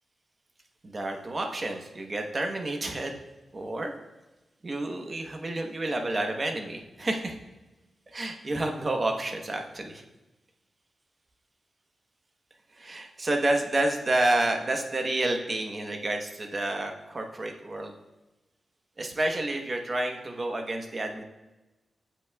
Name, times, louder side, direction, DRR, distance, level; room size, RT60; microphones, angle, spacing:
voice 1, 0.8-3.1 3.5-3.9 4.6-7.4 8.1-10.0 12.8-18.0 19.0-21.2, right 2 dB, 30° right, 3 dB, 1.0 m, -29 dB
17.0 x 6.0 x 2.3 m, 1.1 s
wide cardioid pair, 165°, 0 cm